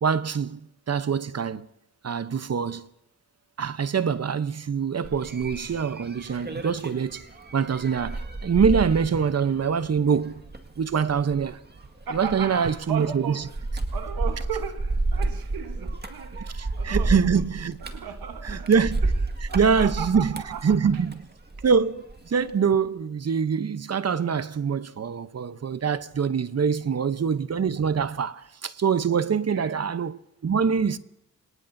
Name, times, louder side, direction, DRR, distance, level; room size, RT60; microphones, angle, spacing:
voice 1, 0.0-0.6 0.9-1.7 2.0-2.9 3.6-7.3 7.5-10.4 10.8-11.6 12.1-13.4 16.6-17.8 18.4-19.0 19.5-20.3 20.6-21.1 21.6-31.0, right 6 dB, 45° right, 0.9 m, -24 dB
sound 1, 5.0-21.8 22.1-22.5, right 2 dB, 30° right, 1.9 m, -31 dB
voice 2, 12.1-13.6 13.9-17.4 17.8-18.7 19.0-19.1 19.5-20.8 26.6-27.0 29.2-29.8, right 7 dB, 85° right, 1.3 m, -36 dB
26.5 x 18.5 x 2.7 m
cardioid pair, 65°, 35 cm